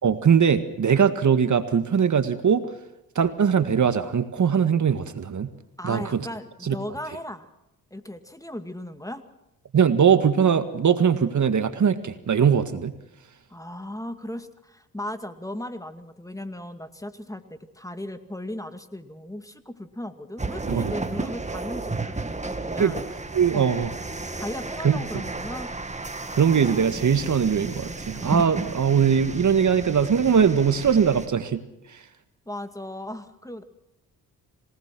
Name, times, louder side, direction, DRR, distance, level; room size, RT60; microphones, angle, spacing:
voice 1, 0.0-2.7 3.2-5.5 5.8-6.2 6.6-6.7 9.7-12.9 20.7-20.9 22.8-22.9 23.3-23.9 24.8-25.0 26.4-31.6, right 7 dB, 50° right, 10 dB, 1.8 m, -21 dB
voice 2, 5.8-7.5 7.9-9.2 13.5-23.0 23.5-23.7 24.3-25.7 32.5-33.6, left 1 dB, 10° left, 9 dB, 2.3 m, -36 dB
sound 1, 20.4-31.3, right 2 dB, 20° right, 2.1 m, -33 dB
27.0 x 18.5 x 6.1 m, 0.86 s
supercardioid pair, 60°, 37 cm